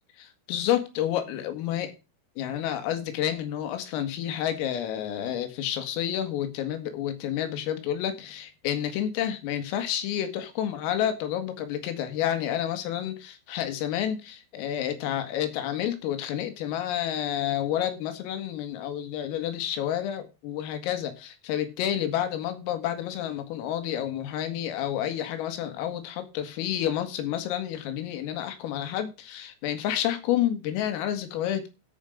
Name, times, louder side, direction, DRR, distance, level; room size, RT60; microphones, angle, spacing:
voice 1, 0.2-1.9 2.4-31.7, left 11 dB, 85° left, 4.4 m, -29 dB
13.5 x 5.1 x 6.4 m
omnidirectional pair, 5.8 m